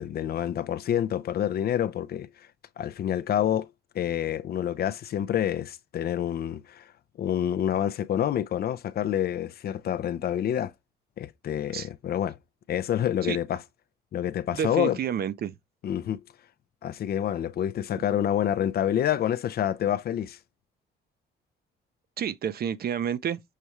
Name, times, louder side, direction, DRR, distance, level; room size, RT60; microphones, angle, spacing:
voice 1, 0.0-2.5 2.8-3.7 3.9-6.9 7.2-10.7 11.2-12.4 12.7-13.6 14.1-15.0 15.8-16.2 16.8-20.4, left 10 dB, 55° left, 0.4 m, -27 dB
voice 2, 14.5-15.6 22.2-23.4, right 8 dB, 50° right, 0.5 m, -29 dB
6.5 x 2.3 x 2.9 m
cardioid pair, 90°, 20 cm